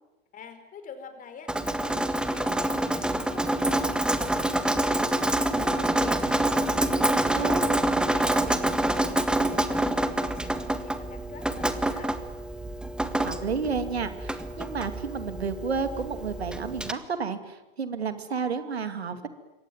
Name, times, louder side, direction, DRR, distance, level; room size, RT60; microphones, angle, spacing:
voice 1, 0.3-7.3 7.8-12.1, left 6 dB, 25° left, 8 dB, 5.1 m, -46 dB
Drip, 1.5-16.9, right 1 dB, 5° right, 1.7 m, -27 dB
voice 2, 13.2-19.3, right 5 dB, 90° right, 9 dB, 2.6 m, -31 dB
27.0 x 23.0 x 9.4 m, 1.0 s
hypercardioid pair, 115°, 31 cm